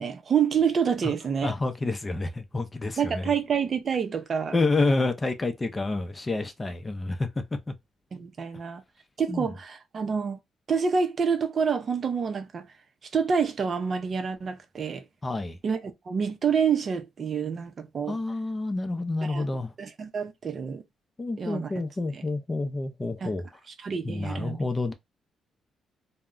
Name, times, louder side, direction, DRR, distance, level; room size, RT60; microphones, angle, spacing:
voice 1, 0.0-1.5 3.0-4.6 8.1-8.8 9.2-10.4 10.7-12.7 13.1-15.0 15.6-18.2 19.3-19.5 19.8-20.8 21.4-21.7 22.1-22.2 23.2-23.4 23.8-24.7, right 6 dB, 45° right, 0.5 m, -27 dB
voice 2, 1.4-3.3 4.5-7.3 9.3-9.5 15.2-15.6 18.1-19.7 21.2-23.4 24.0-24.9, left 3 dB, 25° left, 0.5 m, -28 dB
2.2 x 2.1 x 3.6 m
cardioid pair, 90°, 0 cm